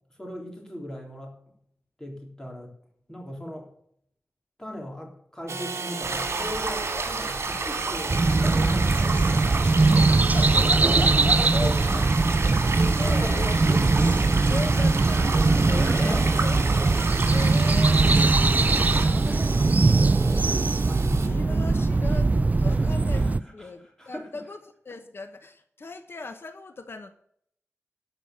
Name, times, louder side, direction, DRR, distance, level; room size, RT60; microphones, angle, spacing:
voice 1, 0.1-1.3 2.0-2.7 3.1-3.7 4.6-9.5 11.4-12.1 13.0-14.3 16.0-16.4 18.3-21.4 22.6-24.4, left 1 dB, 10° left, 0 dB, 3.6 m, -38 dB
Engine / Sawing, 5.5-21.3, right 4 dB, 85° right, 1.0 m, -37 dB
sound 1, 6.0-19.1, right 3 dB, 65° right, 2.5 m, -31 dB
sound 2, 8.1-23.4, right 3 dB, 35° right, 0.3 m, -21 dB
voice 2, 9.9-12.0 12.9-13.6 14.5-16.6 17.1-18.2 21.2-24.6 24.8-27.1, left 3 dB, 55° left, 8 dB, 1.0 m, -37 dB
12.5 x 5.6 x 8.3 m, 0.67 s
wide cardioid pair, 95°, 5 cm